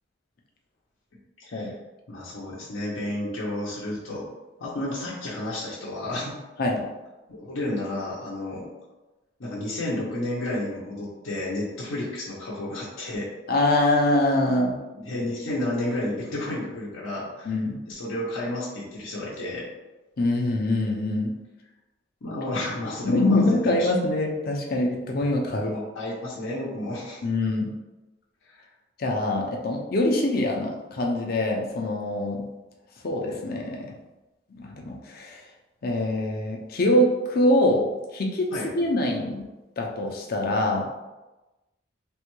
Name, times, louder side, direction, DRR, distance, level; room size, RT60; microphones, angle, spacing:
voice 1, 1.4-1.7 2.1-4.2 4.6-6.4 7.3-8.7 9.4-13.3 15.0-17.5 17.9-19.6 22.2-23.9 25.6-27.2 28.5-28.7 38.5-38.7, left 1 dB, 85° left, -6 dB, 0.7 m, -31 dB
voice 2, 13.5-14.8 17.5-17.8 20.2-21.3 23.0-25.7 27.2-27.7 29.0-32.4 33.0-33.9 34.6-35.4 35.8-37.9 38.1-39.5 39.8-40.9, left 1 dB, 50° left, 1 dB, 0.5 m, -24 dB
3.3 x 2.2 x 3.0 m, 1.1 s
head